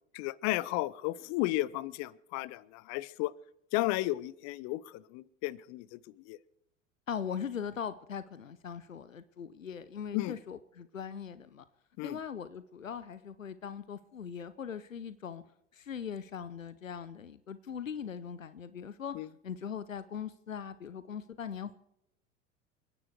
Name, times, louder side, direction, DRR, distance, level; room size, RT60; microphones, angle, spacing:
voice 1, 0.1-3.3 3.7-6.0 6.3-6.4 10.1-10.3 12.0-12.2 19.1-19.3, left 17 dB, 45° left, 21 dB, 0.8 m, -33 dB
voice 2, 7.1-11.6 12.0-15.4 15.7-19.2 19.4-21.8, left 7 dB, 90° left, 14 dB, 0.7 m, -40 dB
28.5 x 9.8 x 4.7 m, 0.80 s
figure-of-eight pair, 80°, 38 cm